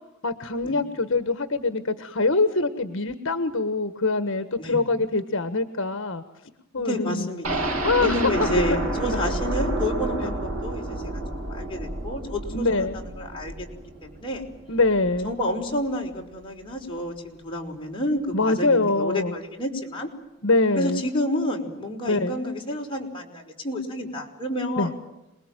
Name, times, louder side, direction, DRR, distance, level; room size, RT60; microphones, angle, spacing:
voice 1, 0.2-6.2 6.7-7.3 7.8-8.5 8.9-9.2 10.2-10.3 12.5-13.0 14.7-15.3 18.3-19.3 20.4-21.0 22.1-22.4 24.8-24.9, left 3 dB, 65° left, 10 dB, 1.5 m, -24 dB
voice 2, 6.8-11.2 11.5-13.7 14.0-14.4 15.2-20.1 20.8-24.9, left 1 dB, 25° left, 0 dB, 5.4 m, -30 dB
sound 1, 7.4-15.3 15.7-15.8 16.1-16.2, right 2 dB, 90° right, 3.8 m, -30 dB
27.5 x 21.0 x 9.2 m, 0.93 s
head